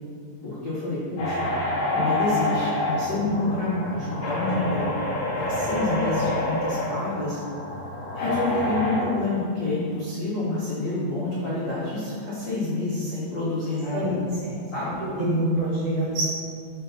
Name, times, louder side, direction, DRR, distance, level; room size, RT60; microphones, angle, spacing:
voice 1, 0.4-1.5 1.9-4.9 5.4-7.4 8.1-14.1 14.7-14.9, left 2 dB, 90° left, -11 dB, 1.0 m, -28 dB
sound 1, 1.2-9.0, left 1 dB, 75° left, 1.4 m, -27 dB
voice 2, 15.0-16.2, right 1 dB, 75° right, -5 dB, 1.9 m, -25 dB
4.8 x 4.5 x 5.7 m, 2.3 s
omnidirectional pair, 4.4 m